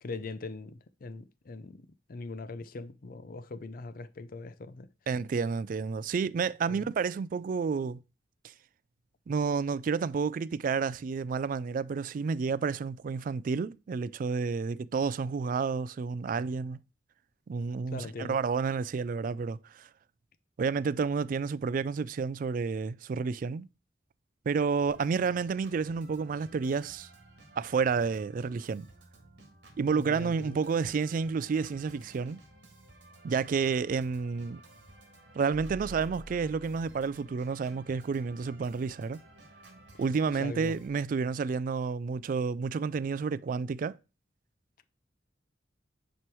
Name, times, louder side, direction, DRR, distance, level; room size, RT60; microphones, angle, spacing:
voice 1, 0.0-4.9 6.7-6.9 17.9-18.4 29.9-30.6 40.4-40.7, left 3 dB, 50° left, 0.5 m, -41 dB
voice 2, 5.1-8.0 9.3-16.8 17.5-19.9 20.6-23.7 24.5-27.1 27.6-28.9 29.8-32.4 33.2-34.6 35.3-39.2 40.0-44.0, right 5 dB, 45° right, 0.3 m, -30 dB
Organ, 24.9-40.9, right 2 dB, 65° right, 1.8 m, -55 dB
sound 1, 35.5-37.3, right 1 dB, 85° right, 0.9 m, -47 dB
9.1 x 3.1 x 4.6 m
head